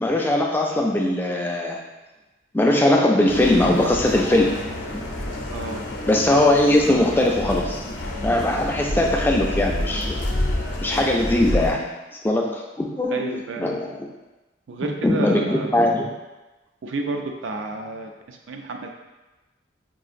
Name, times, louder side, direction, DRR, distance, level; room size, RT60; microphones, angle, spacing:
voice 1, 0.0-1.8 2.5-4.6 4.9-5.0 6.1-7.8 8.2-10.2 10.8-11.8 12.2-14.1 15.0-16.0, left 1 dB, 10° left, 0 dB, 0.3 m, -20 dB
sound 1, 3.3-11.7, left 1 dB, 70° left, 0.5 m, -28 dB
voice 2, 5.5-5.9 13.1-13.8 14.7-15.8 16.8-18.9, right 3 dB, 80° right, 3 dB, 0.4 m, -31 dB
4.7 x 2.5 x 2.5 m, 1.1 s
head